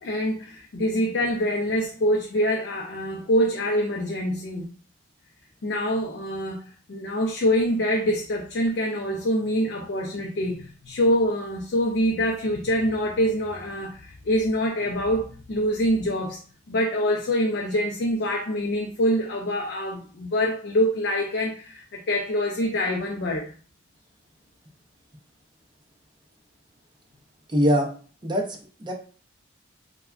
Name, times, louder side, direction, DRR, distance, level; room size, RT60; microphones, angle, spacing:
voice 1, 0.0-4.7 5.6-6.6 6.9-16.4 16.7-23.5, equal, 60° left, 0.4 m, -25 dB
voice 2, 27.5-27.9 28.2-28.9, equal, 25° right, 0.4 m, -23 dB
3.3 x 2.1 x 2.3 m
head